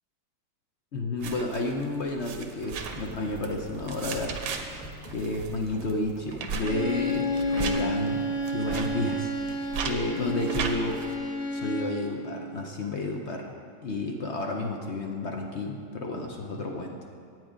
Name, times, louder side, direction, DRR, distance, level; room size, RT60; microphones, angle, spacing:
voice 1, 0.9-4.4 5.1-11.0 11.5-13.5 13.8-17.0, left 2 dB, 60° left, 1 dB, 0.7 m, -31 dB
sound 1, 1.2-11.2, right 6 dB, 70° right, 1.3 m, -38 dB
sound 2, 2.6-8.2, right 1 dB, 5° left, 0.9 m, -44 dB
Bowed string instrument, 6.6-12.1, equal, 40° left, 1.3 m, -30 dB
9.5 x 8.9 x 5.0 m, 2.4 s
omnidirectional pair, 2.0 m